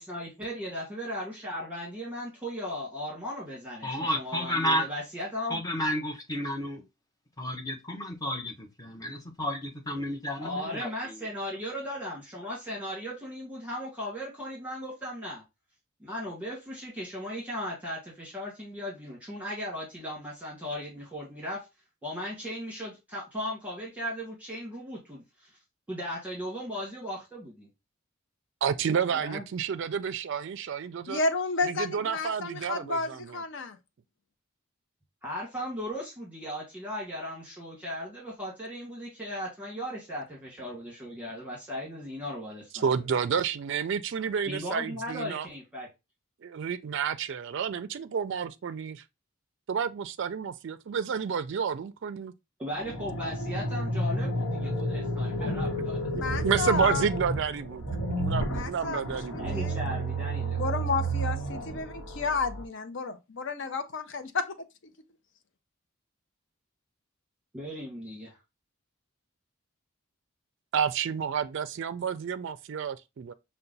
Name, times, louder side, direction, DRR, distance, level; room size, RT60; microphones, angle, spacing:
voice 1, 0.0-5.6 10.4-15.4 16.0-21.6 22.0-25.6 25.9-27.7 29.1-29.4 35.2-42.9 44.5-45.9 52.6-56.0 59.3-60.7 67.5-68.4, equal, 5° right, 1.7 m, -37 dB
voice 2, 3.8-4.9 5.5-6.8 7.4-11.2, equal, 15° left, 0.8 m, -32 dB
voice 3, 28.6-31.2 31.6-33.4 42.7-45.5 46.4-49.0 49.7-52.3 56.1-57.8 58.1-59.5 70.7-73.3, right 7 dB, 60° right, 0.3 m, -30 dB
voice 4, 31.1-33.8 56.1-57.0 58.5-59.8 60.6-64.5, left 4 dB, 60° left, 0.5 m, -31 dB
sound 1, 52.7-62.6, right 1 dB, 80° left, 1.0 m, -31 dB
5.6 x 2.2 x 3.9 m
head